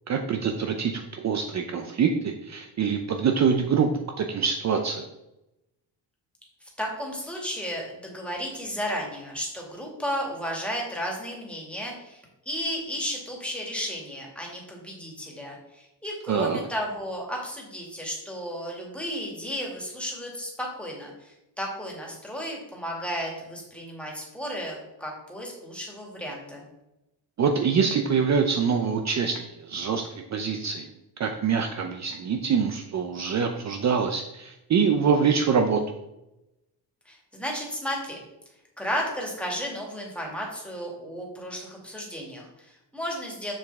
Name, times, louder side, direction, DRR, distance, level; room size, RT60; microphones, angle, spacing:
voice 1, 0.1-5.0 16.3-16.6 27.4-30.9 31.2-35.8, right 6 dB, 40° right, 5 dB, 0.6 m, -25 dB
voice 2, 6.8-26.6 37.1-38.2 38.8-43.5, equal, 5° left, -1 dB, 2.2 m, -33 dB
7.5 x 7.0 x 3.5 m, 0.92 s
cardioid pair, 145°, 42 cm